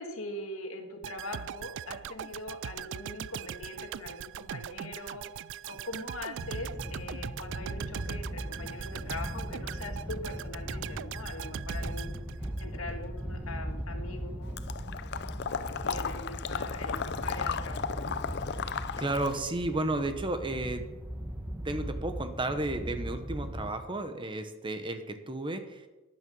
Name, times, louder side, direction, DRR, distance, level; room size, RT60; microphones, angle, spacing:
voice 1, 0.0-5.2 5.7-12.3 12.6-14.6 15.0-15.2 15.6-17.8, left 2 dB, 65° left, 4 dB, 2.0 m, -42 dB
sound 1, 1.0-13.0 13.4-13.5, right 9 dB, 55° right, 0.3 m, -41 dB
sound 2, 6.4-23.7, equal, 5° right, 1.1 m, -38 dB
Water / Liquid, 14.6-19.4, left 6 dB, 50° left, 0.5 m, -35 dB
voice 2, 18.6-20.8 21.6-25.9, right 2 dB, 25° right, 8 dB, 1.2 m, -33 dB
12.0 x 10.5 x 5.5 m, 1.1 s
head